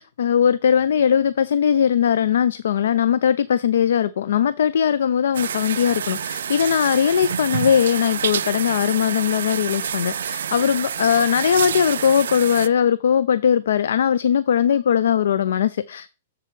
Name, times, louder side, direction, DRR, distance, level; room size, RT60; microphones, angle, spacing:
voice 1, 0.0-16.1, left 8 dB, 75° left, 0.3 m, -20 dB
sound 1, 5.3-12.7, right 8 dB, 90° right, 0.3 m, -28 dB
7.4 x 6.7 x 3.1 m
hypercardioid pair, 165°, 0 cm